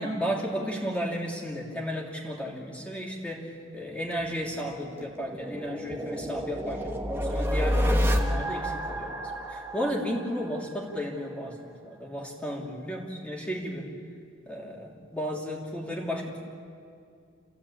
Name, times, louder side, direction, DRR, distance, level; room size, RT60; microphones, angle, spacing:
voice 1, 0.0-9.2 9.5-13.9 14.5-16.4, equal, 5° left, -2 dB, 3.1 m, -34 dB
sound 1, 4.2-11.0, equal, 10° right, 1.8 m, -29 dB
30.0 x 16.5 x 8.7 m, 2.4 s
head